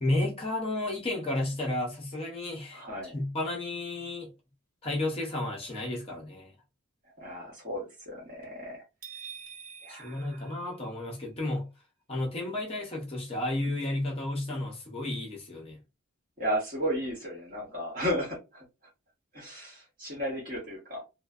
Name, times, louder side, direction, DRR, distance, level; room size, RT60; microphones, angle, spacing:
voice 1, 0.0-4.3 4.8-6.5 9.9-11.7 12.1-15.8, left 1 dB, 25° left, 0.5 m, -32 dB
voice 2, 2.7-3.2 7.2-8.8 9.8-10.4 16.4-18.6 19.3-21.0, equal, 40° right, 1.1 m, -34 dB
sound 1, 9.0-11.2, right 7 dB, 85° right, 0.9 m, -46 dB
3.0 x 2.0 x 2.3 m
head